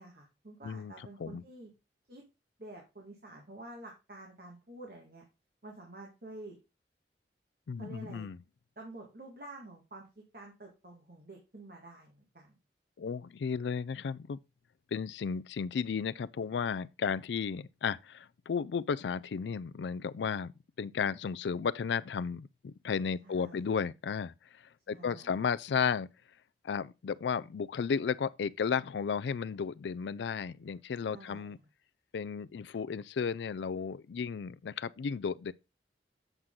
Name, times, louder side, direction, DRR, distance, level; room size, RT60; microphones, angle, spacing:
voice 1, 0.0-1.7 2.1-2.2 2.6-5.2 5.6-6.6 7.8-8.3 8.8-12.6 23.2-23.7 24.9-25.3 31.1-31.6, right 2 dB, 55° right, 1.8 m, -49 dB
voice 2, 0.6-1.4 7.7-8.4 13.0-14.4 14.9-20.5 20.8-26.1 26.6-31.6 32.1-35.5, left 6 dB, 80° left, 0.4 m, -34 dB
8.0 x 5.9 x 3.7 m
head